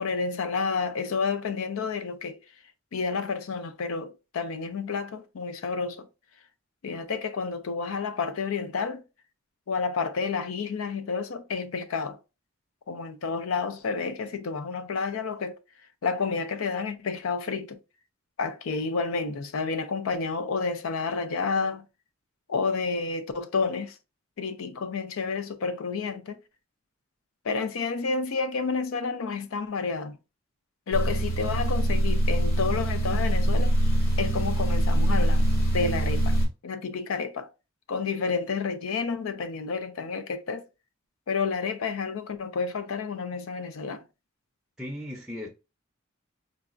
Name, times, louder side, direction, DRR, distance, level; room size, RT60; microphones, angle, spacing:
voice 1, 0.0-2.4 2.9-6.1 6.8-9.0 9.7-12.2 12.9-15.6 16.0-17.8 18.4-21.8 22.5-24.0 24.4-26.4 27.4-30.2 30.9-33.9 34.2-35.5 35.7-36.4 36.6-37.5 37.9-40.7 41.3-44.0, left 4 dB, 80° left, 0.4 m, -30 dB
sound 1, 30.9-36.5, right 1 dB, 45° left, 1.0 m, -23 dB
voice 2, 44.8-45.5, left 1 dB, 5° right, 0.5 m, -36 dB
3.9 x 2.3 x 2.5 m
head